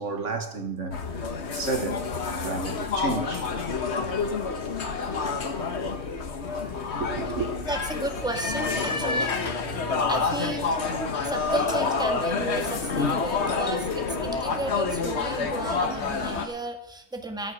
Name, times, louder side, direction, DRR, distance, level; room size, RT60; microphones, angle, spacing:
voice 1, 0.0-2.1 2.4-3.5 7.0-7.5, right 3 dB, 70° right, 1.8 m, -31 dB
sound 1, 0.9-16.5, left 4 dB, 60° left, 1.5 m, -28 dB
voice 2, 7.6-9.4 10.1-10.7 11.2-17.5, right 2 dB, 5° right, 1.7 m, -33 dB
sound 2, 8.1-16.7, right 3 dB, 30° right, 1.0 m, -45 dB
13.5 x 13.0 x 6.5 m
omnidirectional pair, 1.3 m